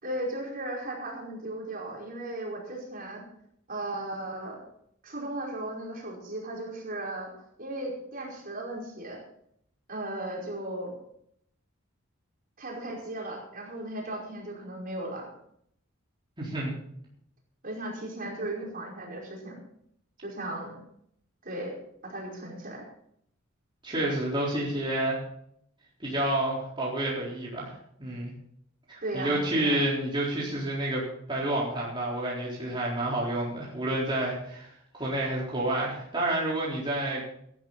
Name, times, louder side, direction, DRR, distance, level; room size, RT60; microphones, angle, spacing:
voice 1, 0.0-3.2 3.7-4.6 5.0-7.3 7.6-9.2 9.9-10.9 12.6-15.3 17.6-19.6 20.2-20.8 21.4-21.7 22.0-22.8 29.0-29.9, right 1 dB, 45° right, -1 dB, 5.0 m, -36 dB
voice 2, 16.4-16.7 23.8-25.2 26.0-27.7 28.0-28.3 28.9-34.7 35.0-37.2, right 1 dB, 25° right, -6 dB, 4.1 m, -29 dB
17.5 x 12.0 x 4.1 m, 0.69 s
head